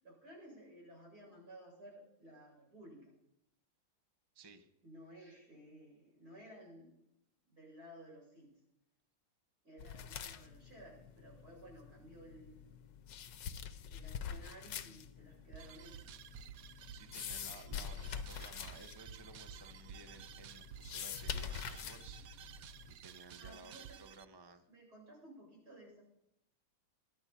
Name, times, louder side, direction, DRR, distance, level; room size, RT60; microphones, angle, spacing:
voice 1, 0.0-3.1 4.8-6.9 7.4-8.5 9.6-12.7 13.9-16.1 23.3-24.0 24.7-26.0, right 1 dB, 50° right, -3 dB, 8.4 m, -56 dB
voice 2, 4.3-4.7 16.9-22.2 22.9-24.7, right 3 dB, 25° right, 7 dB, 0.6 m, -56 dB
sound 1, 9.8-22.9, left 8 dB, 65° left, 1.4 m, -46 dB
sound 2, 15.5-24.3, right 9 dB, 80° right, 0.7 m, -53 dB
22.5 x 11.0 x 4.3 m, 0.80 s
omnidirectional pair, 2.2 m